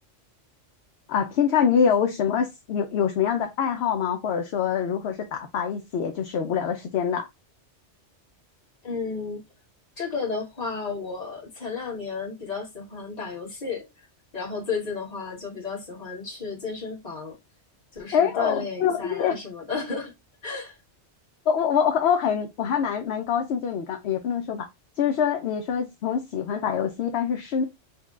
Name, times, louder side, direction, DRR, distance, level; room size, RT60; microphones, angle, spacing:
voice 1, 1.1-7.3 18.1-19.3 21.5-24.7 25.0-27.6, left 7 dB, 70° left, 0.8 m, -25 dB
voice 2, 8.8-9.4 10.0-13.8 14.3-17.4 17.9-20.1 20.4-20.7, left 4 dB, 35° left, 1.5 m, -33 dB
5.7 x 2.2 x 2.4 m
omnidirectional pair, 1.2 m